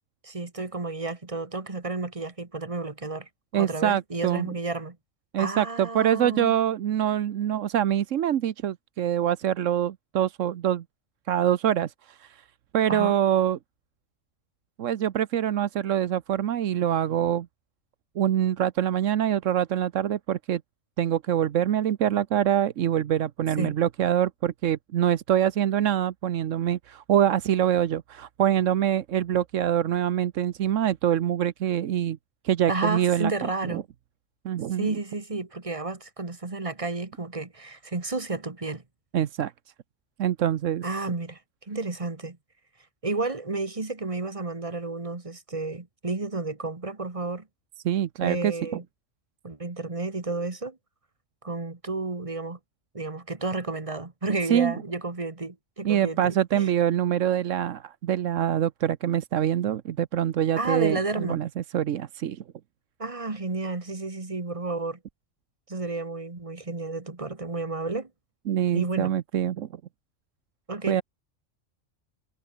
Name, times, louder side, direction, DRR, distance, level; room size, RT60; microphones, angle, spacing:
voice 1, 0.2-5.0 5.4-6.6 12.9-13.2 23.6-23.8 32.7-33.8 34.7-38.8 40.8-41.4 41.7-42.4 43.0-47.5 48.2-48.8 49.4-50.8 51.4-52.6 52.9-56.7 60.6-61.4 63.0-65.0 65.7-68.1 68.7-69.1 70.7-71.0, right 3 dB, 25° right, 1.8 m, -31 dB
voice 2, 3.5-4.5 5.3-10.8 11.3-12.4 12.7-13.6 14.8-17.5 18.2-20.6 21.0-32.2 32.4-33.3 33.7-33.8 34.4-34.9 39.1-39.5 40.2-41.0 47.8-48.6 54.5-54.7 55.8-62.4 68.5-69.7 70.9-71.0, right 10 dB, 85° right, 1.2 m, -25 dB
omnidirectional pair, 1.3 m